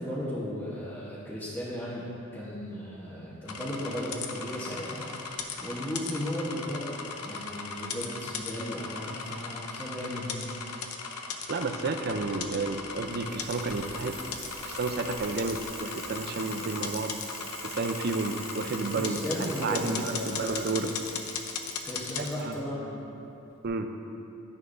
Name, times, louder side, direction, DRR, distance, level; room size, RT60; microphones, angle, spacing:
voice 1, 0.0-5.0 5.6-7.0 7.2-10.5 18.9-20.6 21.8-23.0, equal, 10° left, -9 dB, 1.0 m, -35 dB
sound 1, 3.5-22.3, left 5 dB, 90° left, 0.7 m, -38 dB
voice 2, 11.5-14.2 14.6-17.1 17.6-19.2 19.6-20.9 22.2-22.6 23.6-23.9, right 3 dB, 45° right, 7 dB, 0.5 m, -31 dB
Bicycle, 12.9-22.5 23.6-23.7, right 2 dB, 15° right, 2.0 m, -45 dB
10.5 x 9.7 x 2.6 m, 2.8 s
head